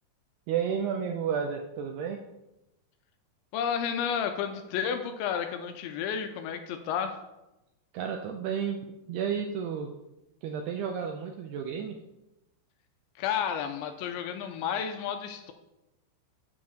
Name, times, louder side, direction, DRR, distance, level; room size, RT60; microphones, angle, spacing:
voice 1, 0.5-2.2 7.9-8.8 9.1-9.9 10.4-12.0, right 7 dB, 80° right, 3 dB, 2.4 m, -31 dB
voice 2, 3.5-7.2 13.2-15.5, left 8 dB, 85° left, 6 dB, 2.9 m, -31 dB
8.0 x 7.3 x 6.3 m, 0.96 s
omnidirectional pair, 5.4 m